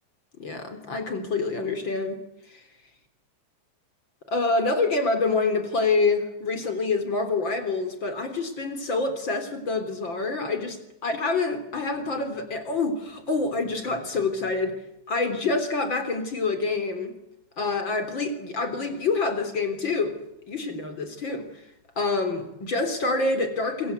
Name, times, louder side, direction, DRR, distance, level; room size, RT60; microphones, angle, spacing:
voice 1, 0.4-2.2 2.5-2.6 4.3-10.7 11.0-14.8 15.1-17.1 17.6-20.2 20.5-21.5 22.0-23.9, left 3 dB, 30° left, 8 dB, 3.5 m, -26 dB
26.5 x 24.0 x 8.2 m, 0.86 s
omnidirectional pair, 5.0 m